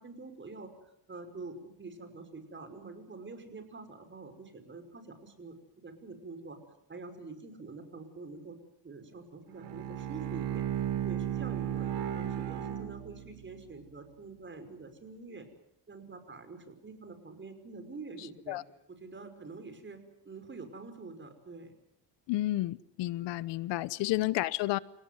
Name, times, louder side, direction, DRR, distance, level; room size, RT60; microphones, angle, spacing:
voice 1, 0.0-6.6 6.9-8.6 8.8-10.7 11.0-15.5 15.9-18.6 18.9-21.7 24.1-24.2, right 3 dB, 25° right, 5.5 m, -46 dB
Bowed string instrument, 9.5-13.6, right 11 dB, 70° right, 4.1 m, -35 dB
voice 2, 22.3-24.8, left 17 dB, 80° left, 1.0 m, -31 dB
29.0 x 18.0 x 9.5 m
cardioid pair, 110°, 42 cm